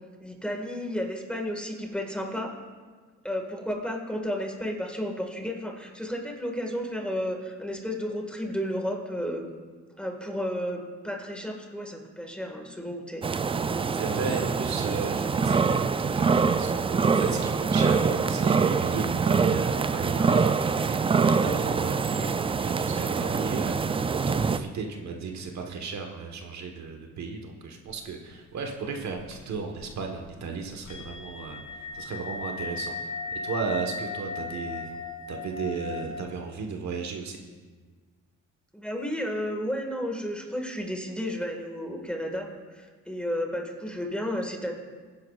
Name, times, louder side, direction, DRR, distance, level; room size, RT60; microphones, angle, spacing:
voice 1, 0.2-2.5 3.2-9.5 10.0-13.3 38.7-42.5 42.7-44.8, equal, 5° left, 2 dB, 1.8 m, -32 dB
sound 1, 13.2-24.6, right 5 dB, 20° right, 0.3 m, -25 dB
voice 2, 14.0-31.6 31.9-32.9 33.3-34.9 35.3-37.4, right 5 dB, 65° right, 3 dB, 1.3 m, -35 dB
sound 2, 27.9-28.4 28.6-28.7 29.0-36.2, left 4 dB, 70° left, 1.1 m, -37 dB
21.5 x 10.5 x 2.4 m, 1.4 s
cardioid pair, 90°, 30 cm